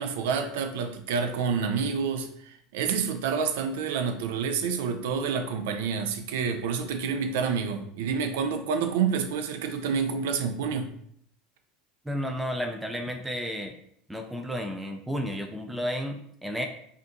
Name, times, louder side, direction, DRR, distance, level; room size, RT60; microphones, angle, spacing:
voice 1, 0.0-10.9, right 6 dB, 70° right, 6 dB, 0.5 m, -28 dB
voice 2, 12.1-13.7 14.1-16.7, equal, 5° right, 3 dB, 0.5 m, -32 dB
5.0 x 2.6 x 2.5 m, 0.68 s
hypercardioid pair, 80°, 0 cm